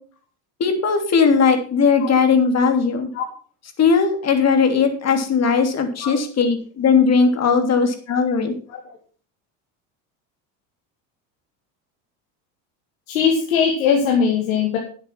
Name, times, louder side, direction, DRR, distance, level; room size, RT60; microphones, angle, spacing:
voice 1, 0.6-3.1 3.8-8.5, left 5 dB, 40° left, 6 dB, 3.0 m, -18 dB
voice 2, 13.1-14.8, left 6 dB, 90° left, 1 dB, 2.3 m, -20 dB
9.8 x 8.5 x 5.9 m, 0.43 s
supercardioid pair, 90°, 40 cm